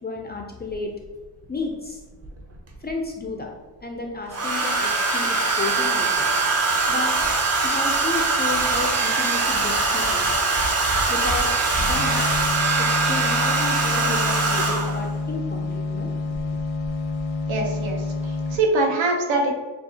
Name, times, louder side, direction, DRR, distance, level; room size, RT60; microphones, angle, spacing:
voice 1, 0.0-0.9 1.5-2.0 2.8-3.5 3.8-6.3 6.9-7.1 7.6-10.5 11.1-11.5 11.8-12.2 12.8-16.1 16.4-16.6, left 3 dB, 25° left, 1 dB, 0.3 m, -32 dB
Domestic sounds home sounds, 0.7-0.8 2.2-2.9 4.3-15.1 16.3-16.6 16.8-17.2, right 3 dB, 35° right, 0.7 m, -22 dB
sound 1, 12.0-18.6, left 3 dB, 80° left, 0.7 m, -28 dB
voice 2, 17.5-19.5, right 2 dB, 80° right, 2 dB, 1.0 m, -23 dB
7.0 x 2.4 x 2.7 m, 1.2 s
wide cardioid pair, 145°, 46 cm